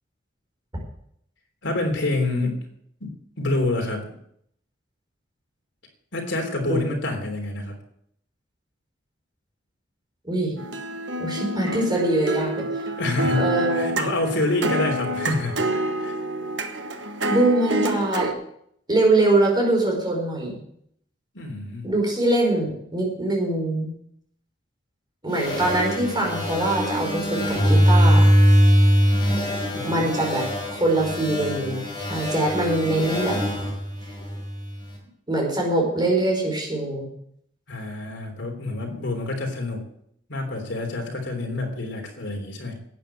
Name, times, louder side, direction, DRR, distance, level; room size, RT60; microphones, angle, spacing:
voice 1, 1.6-2.6 3.0-4.2 6.1-7.8 13.0-13.4 13.7-16.2 21.3-21.9 29.7-30.1 37.7-39.8 40.3-42.7, left 2 dB, 70° left, 2 dB, 3.4 m, -27 dB
sound 1, 10.6-18.3, right 1 dB, 70° right, 1.4 m, -27 dB
voice 2, 11.2-12.7 13.3-13.9 17.3-18.3 18.9-20.6 21.8-23.9 25.2-28.3 29.8-30.4 30.7-33.4 35.3-37.1, right 2 dB, 25° right, 0 dB, 4.9 m, -23 dB
sound 2, 25.3-34.8, equal, 25° left, 5.0 m, -21 dB
12.0 x 9.0 x 7.6 m, 0.70 s
head